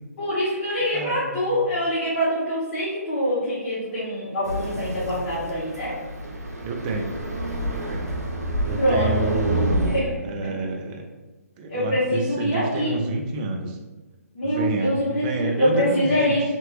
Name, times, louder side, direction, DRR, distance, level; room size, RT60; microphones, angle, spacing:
voice 1, 0.2-5.9 8.8-9.4 9.9-10.1 11.7-13.0 14.3-16.4, equal, 50° left, -10 dB, 1.2 m, -24 dB
voice 2, 0.9-1.6 6.6-7.1 7.6-8.2 8.6-11.1 11.6-13.8 14.4-16.4, right 2 dB, 30° right, 2 dB, 0.5 m, -29 dB
sound 1, 4.4-10.0, right 1 dB, 85° right, 0.6 m, -28 dB
2.8 x 2.5 x 3.2 m, 1.2 s
figure-of-eight pair, 135°, 9 cm